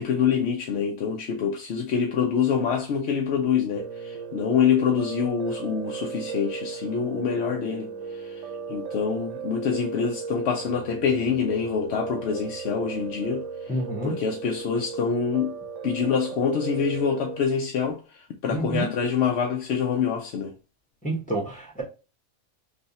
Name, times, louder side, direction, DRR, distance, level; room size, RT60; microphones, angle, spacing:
voice 1, 0.0-13.8 14.0-15.6 15.8-20.5, left 6 dB, 60° left, 0.8 m, -26 dB
Piano, 3.8-17.5, right 6 dB, 70° right, 0.9 m, -36 dB
voice 2, 13.7-14.2 18.5-18.9 21.0-21.8, right 1 dB, 5° left, 1.1 m, -28 dB
3.3 x 2.7 x 4.0 m
omnidirectional pair, 1.4 m